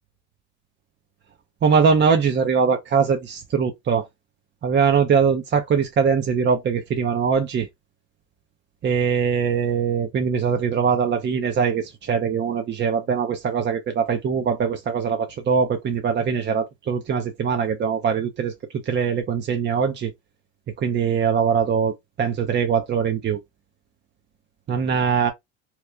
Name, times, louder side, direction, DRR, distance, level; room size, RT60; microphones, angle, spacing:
voice 1, 1.6-4.1 4.6-7.7 8.8-18.5 18.9-20.1 20.8-23.4 24.7-25.3, right 6 dB, 35° right, 0.7 m, -22 dB
2.9 x 2.2 x 3.6 m
supercardioid pair, 95°, 30 cm